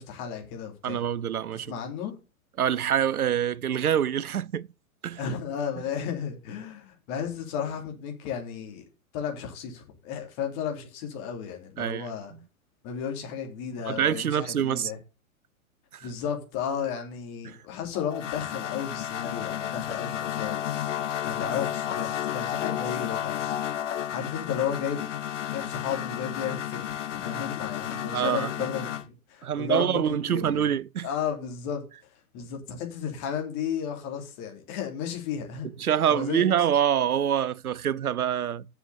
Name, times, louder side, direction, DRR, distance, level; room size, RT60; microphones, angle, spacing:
voice 1, 0.0-1.0 1.7-2.1 5.2-8.8 9.1-12.3 12.8-15.0 16.0-20.6 21.2-23.4 24.1-25.1 25.5-30.0 30.3-30.7 31.0-31.8 32.3-35.7 36.1-36.5, left 7 dB, 35° left, 3.1 m, -33 dB
voice 2, 0.8-1.7 2.6-4.7 5.0-5.2 11.8-12.1 13.8-14.9 15.9-16.1 17.4-17.6 28.1-28.7 29.4-31.1 35.8-38.7, right 9 dB, 90° right, 0.5 m, -26 dB
sound 1, 17.9-29.0, left 10 dB, 55° left, 1.1 m, -32 dB
6.9 x 6.8 x 7.0 m
figure-of-eight pair, 115°, 43 cm